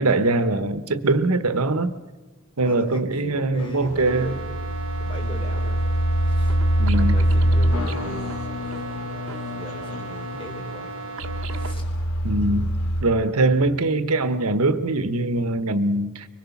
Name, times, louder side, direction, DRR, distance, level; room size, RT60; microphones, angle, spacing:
voice 1, 0.0-1.9 2.6-4.3 6.8-7.2 12.2-12.7 13.0-16.3, right 2 dB, 80° right, 1.1 m, -22 dB
voice 2, 2.6-5.9 6.2-6.6 6.9-9.0 9.5-11.2 11.5-11.9, left 1 dB, 25° left, 3.8 m, -40 dB
sound 1, 3.6-13.0, equal, 80° left, 2.5 m, -24 dB
sound 2, 4.0-11.7, right 4 dB, 60° right, 1.3 m, -36 dB
24.5 x 21.5 x 7.2 m
head